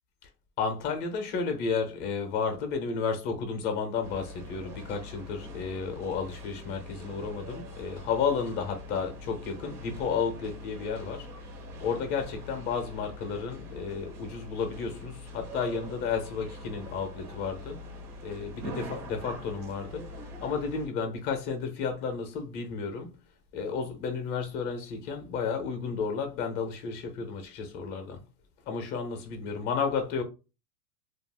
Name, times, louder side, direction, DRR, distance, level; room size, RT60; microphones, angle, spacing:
voice 1, 0.6-11.3 11.8-17.8 18.2-20.1 20.4-23.1 23.5-28.2 28.7-30.2, left 5 dB, 25° left, 0.5 m, -32 dB
sound 1, 4.0-20.9, left 1 dB, 70° right, 1.0 m, -43 dB
2.4 x 2.3 x 3.3 m
supercardioid pair, 155°, 47 cm